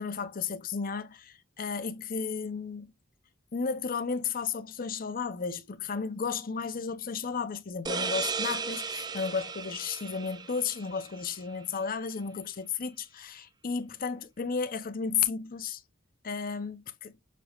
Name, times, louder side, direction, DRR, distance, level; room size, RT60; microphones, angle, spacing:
voice 1, 0.0-2.9 3.5-15.8 16.2-17.1, left 5 dB, 45° left, 0.7 m, -33 dB
sound 1, 7.9-11.3, right 5 dB, 20° right, 0.3 m, -35 dB
6.8 x 3.0 x 2.4 m
head